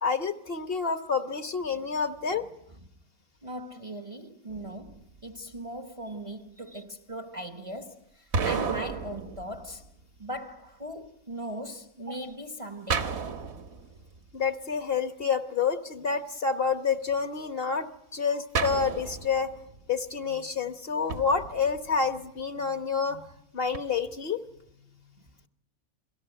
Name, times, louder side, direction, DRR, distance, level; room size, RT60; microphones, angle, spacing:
voice 1, 0.0-2.4 12.1-12.2 14.3-19.5 19.9-23.2 23.5-24.4, left 5 dB, 45° left, 1.2 m, -28 dB
voice 2, 3.4-9.9 10.2-13.1, equal, 25° right, 0.9 m, -39 dB
sound 1, 4.5-5.3 8.3-10.2 12.9-14.4 18.5-19.9 21.1-22.2 23.7-23.8, right 5 dB, 50° right, 1.3 m, -33 dB
27.5 x 18.0 x 8.9 m
omnidirectional pair, 1.5 m